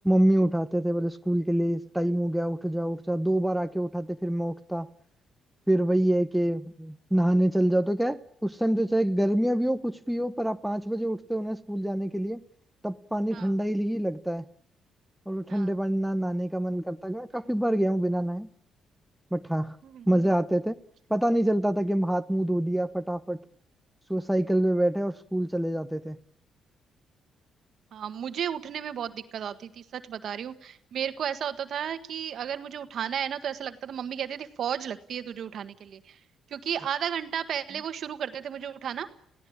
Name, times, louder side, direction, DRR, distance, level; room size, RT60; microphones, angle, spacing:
voice 1, 0.0-4.9 5.7-12.4 12.8-14.5 15.3-18.5 19.3-19.8 20.1-20.8 21.1-23.4 24.1-26.2, right 1 dB, 5° right, 1.0 m, -26 dB
voice 2, 27.9-36.2 36.5-39.1, right 8 dB, 65° right, 1.5 m, -33 dB
28.5 x 16.5 x 8.7 m
cardioid pair, 90°, 0 cm